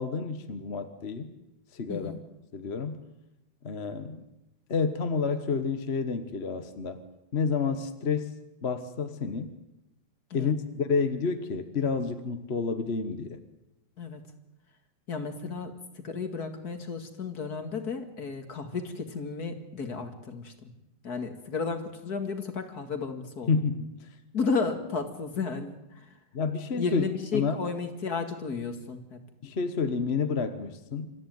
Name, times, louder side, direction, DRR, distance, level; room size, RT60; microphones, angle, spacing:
voice 1, 0.0-1.3 1.7-2.2 2.5-3.0 3.6-4.2 4.7-7.0 7.3-8.3 8.6-9.6 10.3-13.4 23.5-23.9 26.3-27.0 27.3-27.6 29.4-31.1, left 5 dB, 40° left, 9 dB, 1.3 m, -29 dB
voice 2, 1.9-2.2 10.3-10.5 14.0-14.2 15.1-20.7 21.0-23.5 24.3-26.1 26.8-29.2, left 4 dB, 55° left, 8 dB, 2.6 m, -33 dB
26.5 x 14.5 x 9.3 m, 0.95 s
omnidirectional pair, 2.0 m